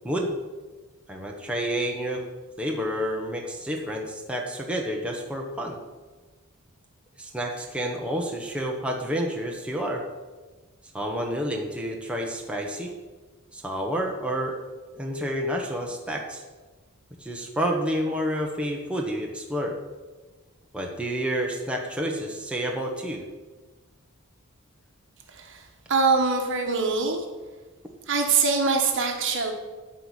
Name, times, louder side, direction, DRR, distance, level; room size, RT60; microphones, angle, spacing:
voice 1, 1.1-2.2 2.6-5.8 7.2-10.0 10.9-12.9 13.5-14.5 14.9-16.4 17.2-19.7 20.7-23.2, equal, 5° right, -1 dB, 1.3 m, -29 dB
voice 2, 25.3-27.2 28.1-29.5, right 4 dB, 60° right, 3 dB, 1.6 m, -24 dB
12.5 x 4.6 x 8.2 m, 1.3 s
head